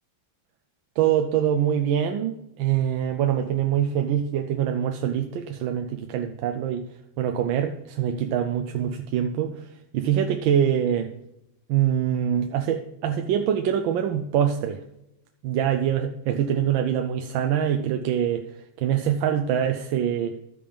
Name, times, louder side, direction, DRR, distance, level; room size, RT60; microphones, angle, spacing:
voice 1, 1.0-6.9 7.2-9.7 9.9-11.1 11.7-14.8 15.4-20.4, right 9 dB, 80° right, 5 dB, 1.4 m, -24 dB
13.0 x 5.1 x 5.2 m, 0.86 s
omnidirectional pair, 2.1 m